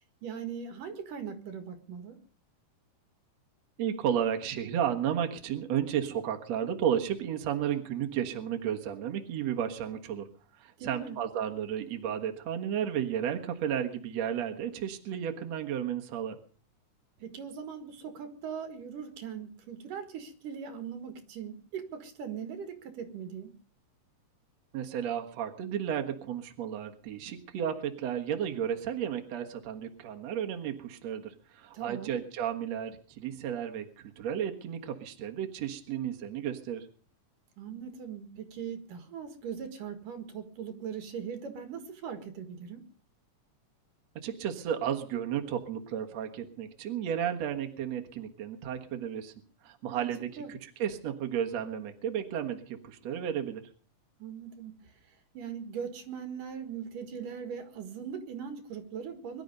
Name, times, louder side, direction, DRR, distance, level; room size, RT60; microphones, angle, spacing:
voice 1, 0.2-2.2 10.8-11.2 17.2-23.6 31.7-32.2 37.6-42.8 49.9-50.1 50.4-50.5 54.2-54.8 55.4-59.4, right 7 dB, 85° right, 7 dB, 3.5 m, -40 dB
voice 2, 3.8-10.3 10.6-16.4 24.7-36.9 44.2-49.3 49.6-53.6, right 9 dB, 60° right, 4 dB, 2.6 m, -33 dB
23.0 x 12.0 x 5.3 m, 0.41 s
omnidirectional pair, 3.7 m